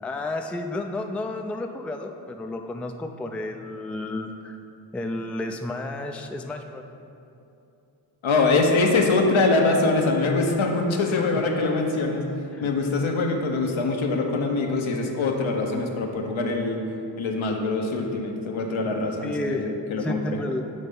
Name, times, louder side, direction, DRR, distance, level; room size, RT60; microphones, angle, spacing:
voice 1, 0.0-4.6 4.9-6.8 11.1-11.4 12.5-12.7 19.2-19.7 20.0-20.6, left 2 dB, 5° left, 4 dB, 0.3 m, -32 dB
voice 2, 8.2-12.2 12.6-16.8 17.2-20.4, left 3 dB, 75° left, 2 dB, 0.9 m, -23 dB
7.6 x 3.2 x 5.3 m, 2.7 s
cardioid pair, 45°, 48 cm